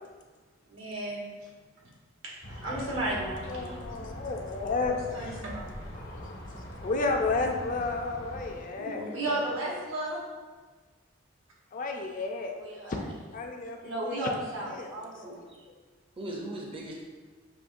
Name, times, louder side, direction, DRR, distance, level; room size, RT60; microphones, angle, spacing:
voice 1, 0.7-1.3 2.2-2.3 2.6-3.8 5.1-5.9 9.1-10.2 12.6-13.0 13.8-15.3, right 1 dB, 80° right, -4 dB, 1.3 m, -34 dB
sound 1, 2.4-8.6, equal, 80° left, 1.2 m, -42 dB
voice 2, 2.7-3.2 3.5-5.4 6.0-9.0 11.7-12.5 12.9-13.0 13.3-15.1, left 3 dB, 40° left, 3 dB, 0.4 m, -33 dB
voice 3, 8.7-9.5 15.2-15.6 16.2-16.9, right 1 dB, 25° right, -2 dB, 0.5 m, -39 dB
6.3 x 3.0 x 2.6 m, 1.4 s
head